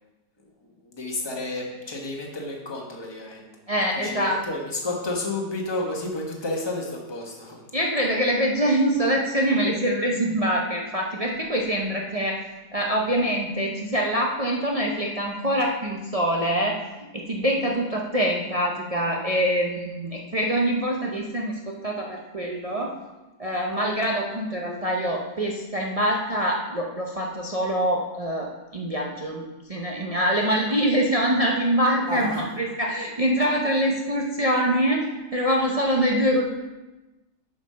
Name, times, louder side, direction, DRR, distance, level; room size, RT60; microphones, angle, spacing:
voice 1, 0.6-3.5 3.9-7.6 30.3-30.4 32.1-32.5, left 2 dB, 20° left, -1 dB, 1.1 m, -31 dB
voice 2, 3.7-4.4 7.7-12.4 12.7-23.0 23.4-35.1 35.3-36.4, equal, 40° right, -1 dB, 0.5 m, -24 dB
7.0 x 5.2 x 5.6 m, 1.1 s
omnidirectional pair, 1.7 m